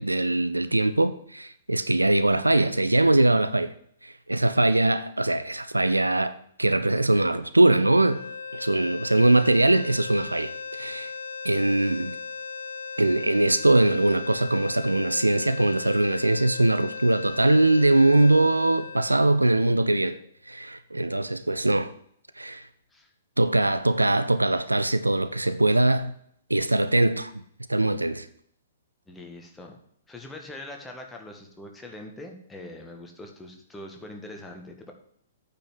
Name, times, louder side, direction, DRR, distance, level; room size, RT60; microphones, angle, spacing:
voice 1, 0.0-3.7 4.0-8.2 8.5-11.1 11.4-12.2 13.0-20.2 20.5-21.9 22.4-22.7 23.4-26.1 26.5-27.3 27.7-28.3, right 2 dB, 85° right, 0.7 m, -22 dB
sound 1, 7.9-20.1, left 5 dB, 65° left, 0.5 m, -37 dB
voice 2, 29.1-29.8 30.1-34.9, left 1 dB, 10° left, 1.8 m, -42 dB
9.0 x 5.7 x 7.9 m
figure-of-eight pair, 115°, 0 cm